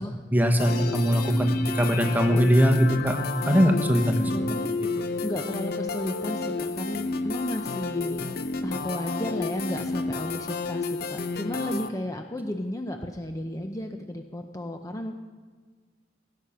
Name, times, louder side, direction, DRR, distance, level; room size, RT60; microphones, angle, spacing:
voice 1, 0.3-3.2 3.4-4.2, equal, 10° right, 5 dB, 1.1 m, -21 dB
sound 1, 0.6-11.9, left 3 dB, 55° left, 0.7 m, -31 dB
voice 2, 4.2-4.7 5.2-8.4 8.6-15.1, left 1 dB, 20° left, 4 dB, 0.7 m, -33 dB
17.0 x 8.5 x 5.8 m, 1.5 s
head